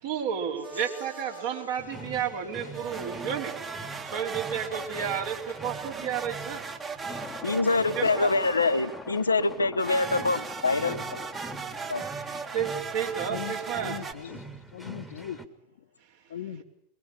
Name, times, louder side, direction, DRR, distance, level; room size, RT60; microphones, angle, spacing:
voice 1, 0.0-3.6 4.0-6.6 7.9-8.3 11.7-11.9 12.5-14.0, right 8 dB, 55° right, 3.6 m, -32 dB
sound 1, 0.6-1.6 2.7-9.1 9.8-14.1, right 5 dB, 20° right, 1.8 m, -38 dB
sound 2, 1.8-15.5, right 2 dB, 5° right, 1.8 m, -45 dB
sound 3, 7.1-12.9, left 6 dB, 20° left, 1.2 m, -43 dB
voice 2, 7.4-11.2 11.9-12.0, left 3 dB, 80° left, 0.9 m, -25 dB
voice 3, 13.8-14.4 14.7-15.4 16.3-16.6, left 10 dB, 60° left, 1.2 m, -38 dB
22.0 x 21.0 x 8.7 m
figure-of-eight pair, 90°, 0 cm